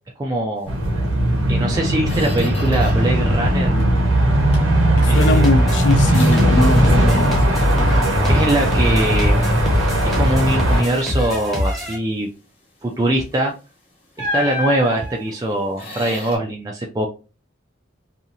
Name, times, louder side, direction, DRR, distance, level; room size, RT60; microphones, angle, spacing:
voice 1, 0.2-0.7 1.5-3.7 5.1-5.5 8.3-9.7 10.0-12.3 12.8-13.5 14.2-17.1, right 1 dB, 20° right, 0.3 m, -22 dB
sound 1, 0.7-10.8, right 1 dB, 85° right, 0.9 m, -17 dB
Squeak, 1.3-1.4 1.8-3.2 3.5-4.1 4.5-7.3 7.6-9.5 9.9-10.1 10.5-11.2 13.3-13.5 14.2-16.4, left 2 dB, 30° left, 0.9 m, -33 dB
voice 2, 5.0-7.4, left 2 dB, 65° left, 0.5 m, -21 dB
sound 2, 5.1-12.0, left 1 dB, ahead, 0.8 m, -24 dB
2.8 x 2.4 x 2.5 m
head